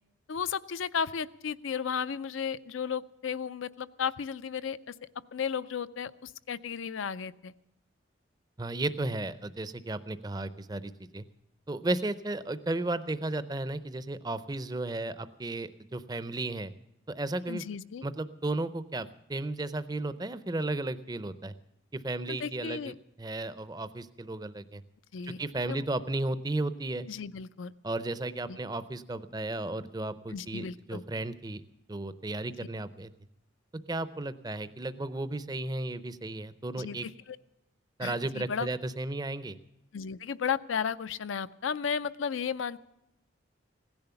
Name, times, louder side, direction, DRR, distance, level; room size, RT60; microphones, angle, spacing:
voice 1, 0.3-4.9 5.3-7.5 17.5-18.0 22.3-22.9 25.1-25.4 25.7-25.8 27.1-27.7 28.5-28.6 30.3-31.0 36.8-37.0 37.3-37.4 38.0-38.7 39.9-42.8, left 7 dB, 80° left, 15 dB, 0.5 m, -34 dB
voice 2, 8.6-11.2 11.7-16.7 17.1-17.6 18.0-21.5 21.9-24.8 25.2-27.1 27.8-31.6 31.9-33.1 33.7-37.1 38.0-39.6, right 2 dB, 20° right, 14 dB, 0.5 m, -34 dB
16.5 x 10.5 x 6.9 m, 0.84 s
head